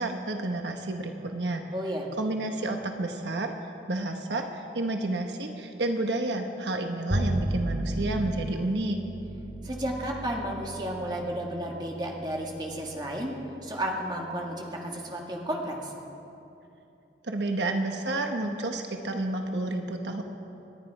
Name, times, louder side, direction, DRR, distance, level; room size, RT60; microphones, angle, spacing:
voice 1, 0.0-1.6 2.2-3.5 3.9-9.0 17.2-20.2, right 2 dB, 80° right, 4 dB, 1.1 m, -30 dB
voice 2, 1.7-2.1 9.6-13.3 13.6-15.9, right 1 dB, 25° right, -1 dB, 2.0 m, -32 dB
Bowed string instrument, 7.1-13.6, right 1 dB, 60° right, 1.3 m, -34 dB
28.5 x 10.0 x 4.9 m, 2.8 s
head